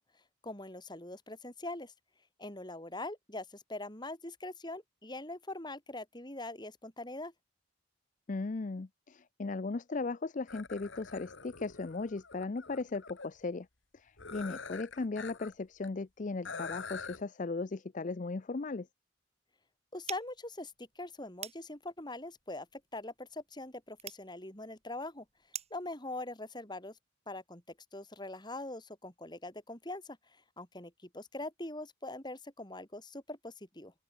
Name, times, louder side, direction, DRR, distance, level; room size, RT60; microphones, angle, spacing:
voice 1, 0.4-1.9 2.4-7.3 19.9-25.3 25.7-27.0 27.3-27.6 27.9-33.9, left 2 dB, 20° left, 4.0 m, -43 dB
voice 2, 8.3-13.7 13.9-18.9, left 3 dB, 40° left, 0.5 m, -37 dB
sound 1, 10.5-13.3 14.2-15.5 15.8-15.9 16.4-17.2, left 5 dB, 70° left, 2.0 m, -45 dB
sound 2, 20.0-25.9, right 9 dB, 30° right, 4.2 m, -48 dB
open air
head